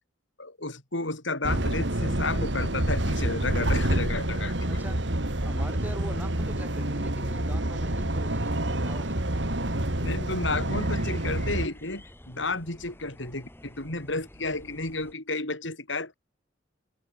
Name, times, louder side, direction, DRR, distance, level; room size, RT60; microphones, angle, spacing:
voice 1, 0.4-4.6 10.0-16.1, left 2 dB, 75° left, 5.6 m, -32 dB
sound 1, 1.4-11.7, right 1 dB, 65° right, 3.0 m, -28 dB
voice 2, 4.6-5.0 5.4-9.1, equal, 10° right, 6.7 m, -42 dB
sound 2, 8.9-15.1, left 1 dB, 10° left, 7.3 m, -50 dB
head